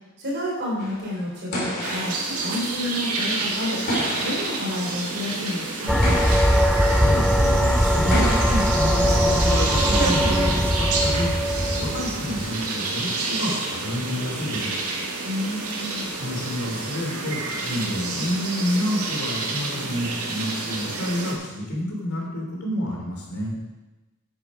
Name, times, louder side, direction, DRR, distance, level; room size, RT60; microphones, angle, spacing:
voice 1, 0.2-3.8 4.2-6.0 15.2-16.0, left 1 dB, 50° right, -4 dB, 3.3 m, -30 dB
sound 1, 0.8-9.5, equal, 50° left, 3.4 m, -32 dB
sound 2, 1.8-21.3, right 3 dB, 85° right, 1.9 m, -29 dB
sound 3, 5.9-12.5, equal, ahead, 0.5 m, -21 dB
voice 2, 6.8-14.7 16.1-23.6, left 1 dB, 80° left, -2 dB, 3.5 m, -29 dB
9.1 x 9.0 x 5.1 m, 1.1 s
head